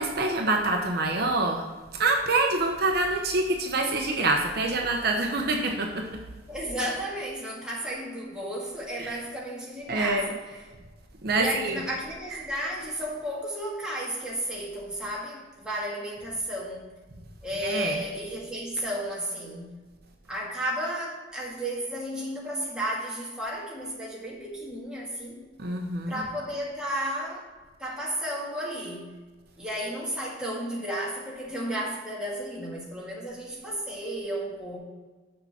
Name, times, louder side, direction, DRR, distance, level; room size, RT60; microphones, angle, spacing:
voice 1, 0.0-1.7 1.9-6.2 9.0-9.2 9.9-10.3 11.2-11.8 12.3-12.4 17.6-18.0 25.6-26.2, right 2 dB, 55° right, 2 dB, 0.9 m, -26 dB
voice 2, 6.5-10.4 11.3-16.8 17.4-19.8 20.3-25.4 26.1-27.5 27.8-29.1 29.6-34.8, right 1 dB, 5° right, -5 dB, 2.0 m, -33 dB
6.7 x 5.6 x 7.2 m, 1.3 s
head